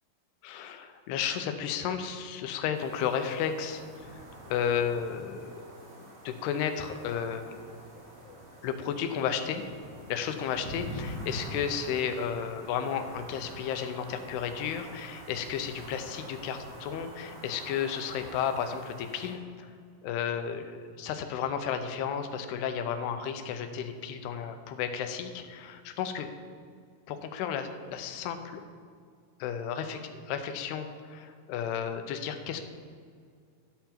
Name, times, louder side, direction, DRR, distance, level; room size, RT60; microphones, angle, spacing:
voice 1, 0.4-4.2 4.5-5.6 6.0-7.7 8.2-9.6 9.9-19.7 20.0-26.3 27.1-28.6 29.4-30.0 30.3-32.6, left 8 dB, 80° left, 8 dB, 2.6 m, -33 dB
sound 1, 2.7-19.3, right 1 dB, 45° right, 3.3 m, -45 dB
12.0 x 5.7 x 4.4 m, 2.2 s
omnidirectional pair, 4.8 m